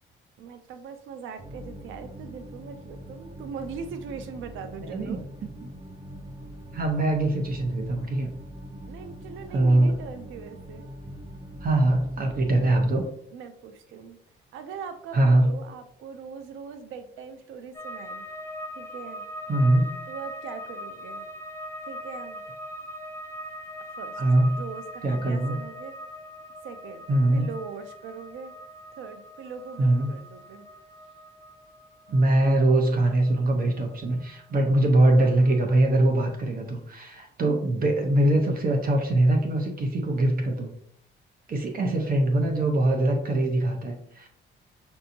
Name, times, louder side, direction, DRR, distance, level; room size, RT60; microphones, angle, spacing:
voice 1, 0.4-5.2 8.9-10.9 13.3-14.2 14.5-18.3 18.7-19.2 20.1-21.3 21.9-22.4 24.0-26.0 26.6-28.5 29.0-30.7, right 6 dB, 85° right, 9 dB, 0.5 m, -41 dB
sound 1, 1.4-13.0, equal, 25° right, 0.5 m, -43 dB
voice 2, 4.9-5.2 5.6-5.7 6.7-8.3 9.5-10.0 11.6-13.0 15.1-15.6 19.5-19.9 24.2-24.6 25.0-25.6 27.1-27.5 29.8-30.1 32.1-40.7 41.5-44.3, right 1 dB, 45° right, 3 dB, 0.8 m, -22 dB
sound 2, 17.7-34.9 35.1-35.9, equal, 15° left, 0.8 m, -41 dB
5.5 x 2.7 x 2.7 m, 0.68 s
cardioid pair, 90°, 20 cm